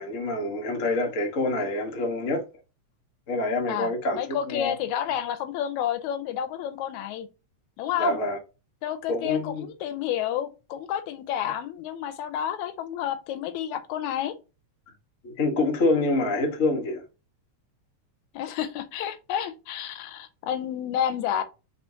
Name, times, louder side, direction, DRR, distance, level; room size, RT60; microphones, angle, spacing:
voice 1, 0.0-2.4 3.3-4.7 8.0-8.4 9.1-9.7 15.2-17.0, left 2 dB, 65° left, 0.7 m, -26 dB
voice 2, 3.7-7.3 7.8-8.2 8.8-14.3 18.3-21.4, left 10 dB, 80° left, 2.0 m, -30 dB
4.3 x 4.0 x 2.7 m
omnidirectional pair, 3.3 m